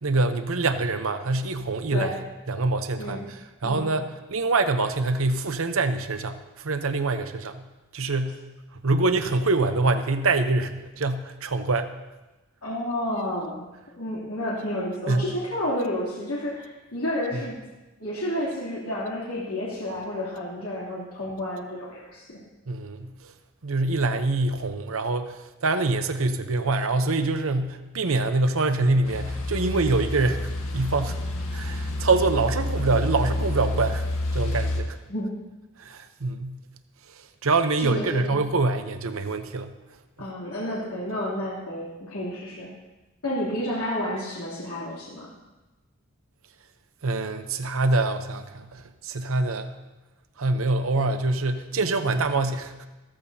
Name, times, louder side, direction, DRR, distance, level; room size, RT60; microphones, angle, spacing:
voice 1, 0.0-2.1 2.5-3.4 3.6-7.6 7.9-8.4 8.8-11.9 15.1-15.3 22.7-23.3 23.6-31.2 31.5-34.0 34.3-35.0 35.8-36.6 37.1-39.7 47.0-49.8 50.4-52.7, right 3 dB, 70° right, 9 dB, 0.8 m, -25 dB
voice 2, 12.6-17.6 18.0-22.4 35.1-35.4 37.8-38.3 40.2-42.7 43.2-45.3, left 1 dB, 85° left, -8 dB, 2.9 m, -30 dB
sound 1, 29.0-34.8, left 2 dB, 70° left, 1.6 m, -29 dB
15.0 x 14.0 x 2.8 m, 1.1 s
head